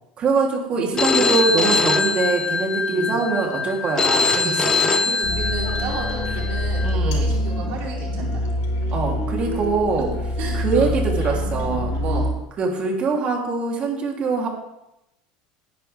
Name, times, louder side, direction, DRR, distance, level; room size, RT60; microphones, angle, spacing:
voice 1, 0.2-4.9 6.8-7.3 8.9-10.1 10.5-11.9 12.6-14.5, right 4 dB, 35° right, 0 dB, 3.2 m, -23 dB
Telephone, 1.0-6.9, left 4 dB, 20° left, 0.7 m, -23 dB
voice 2, 1.2-1.8 2.9-3.1 4.3-8.4 10.4-10.9 12.0-12.3, right 4 dB, 60° right, -3 dB, 4.6 m, -32 dB
sound 1, 5.2-12.3, left 1 dB, 85° left, 4.4 m, -25 dB
17.5 x 10.5 x 3.5 m, 0.88 s
supercardioid pair, 135°, 3 cm